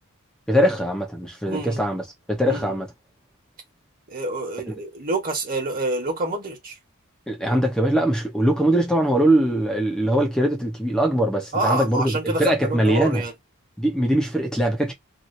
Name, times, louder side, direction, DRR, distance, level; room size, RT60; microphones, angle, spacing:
voice 1, 0.5-2.0 2.3-2.9 4.7-4.8 7.3-13.2 13.8-14.9, right 1 dB, 5° left, 0.8 m, -21 dB
voice 2, 1.5-1.8 2.4-2.8 4.1-6.8 11.5-13.3, right 2 dB, 40° right, 1.5 m, -27 dB
2.9 x 2.7 x 2.6 m
head